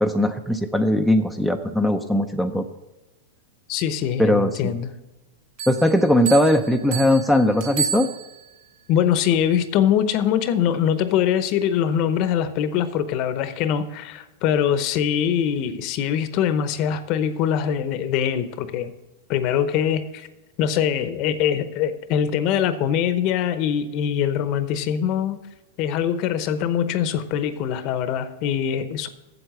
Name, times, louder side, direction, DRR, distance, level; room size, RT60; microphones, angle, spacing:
voice 1, 0.0-2.7 4.2-4.5 5.7-8.1, left 1 dB, ahead, 8 dB, 0.6 m, -19 dB
voice 2, 3.7-4.9 8.9-18.9 19.3-20.3 20.6-25.4 25.8-29.1, left 9 dB, 45° left, 12 dB, 0.8 m, -23 dB
sound 1, 5.6-8.6, right 6 dB, 55° right, 2.2 m, -31 dB
8.0 x 7.7 x 7.6 m, 1.1 s
hypercardioid pair, 125°, 0 cm